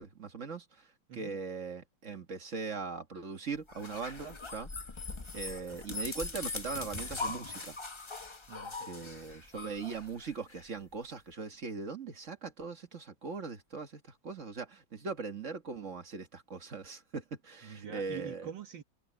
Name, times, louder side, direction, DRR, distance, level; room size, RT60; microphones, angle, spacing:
voice 1, 0.0-4.7 5.3-7.8 8.9-18.5, right 5 dB, 40° right, 1.6 m, -40 dB
sound 1, 3.7-10.6, left 3 dB, 35° left, 0.4 m, -41 dB
voice 2, 8.5-9.4 17.6-18.8, right 8 dB, 70° right, 2.1 m, -46 dB
omnidirectional pair, 2.1 m